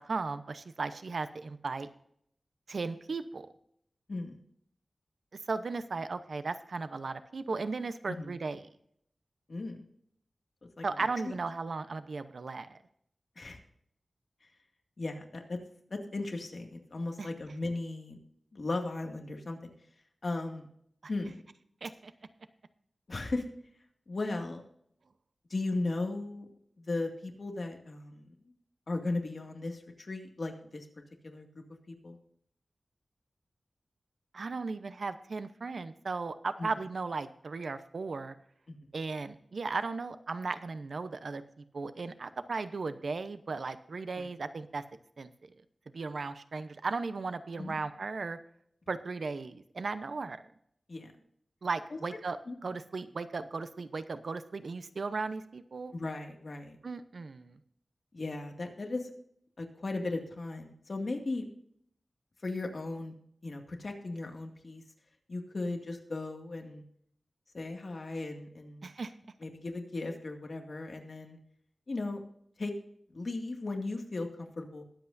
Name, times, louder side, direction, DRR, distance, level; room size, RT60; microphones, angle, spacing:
voice 1, 0.0-1.9 2.7-3.5 5.5-8.6 10.8-12.8 17.2-17.3 21.8-22.1 34.3-38.4 38.9-41.4 41.7-44.8 45.2-45.3 45.9-48.4 48.9-50.4 51.6-52.4 52.6-55.9 56.8-57.6 68.8-69.1, right 4 dB, 75° right, 11 dB, 0.8 m, -36 dB
voice 2, 15.0-15.6 16.1-18.2 18.5-19.7 20.2-20.7 21.1-21.4 23.1-23.4 24.1-24.6 25.5-26.5 26.8-28.3 28.9-30.9 31.2-32.2 36.6-36.7 38.7-38.9 44.2-44.3 47.6-47.8 50.9-51.1 51.9-52.0 52.5-52.6 55.9-56.8 58.1-59.1 59.6-61.4 62.4-63.1 63.4-64.8 65.3-66.8 67.5-68.9 69.4-71.4 71.9-72.2 72.6-72.7 73.1-74.8, left 2 dB, 60° left, 3 dB, 2.1 m, -36 dB
21.5 x 8.1 x 2.6 m, 0.68 s
wide cardioid pair, 90°, 0 cm